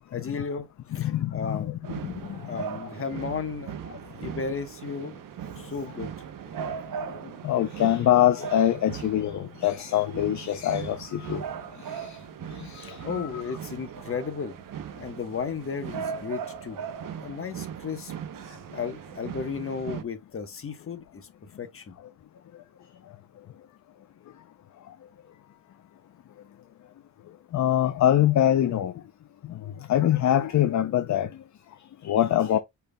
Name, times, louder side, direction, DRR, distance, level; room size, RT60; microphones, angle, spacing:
voice 1, 0.1-1.7 2.5-3.8 4.2-5.2 5.6-6.1 12.7-14.5 15.0-16.8 17.2-18.1 18.4-21.3 21.6-21.9, left 5 dB, 35° left, 1.1 m, -34 dB
voice 2, 1.0-1.6 7.4-11.4 12.7-13.3 27.5-28.9 29.9-31.3 32.0-32.6, left 11 dB, 55° left, 0.6 m, -23 dB
sound 1, 1.8-20.0, right 8 dB, 65° right, 0.8 m, -38 dB
5.1 x 4.5 x 2.2 m
cardioid pair, 115°, 36 cm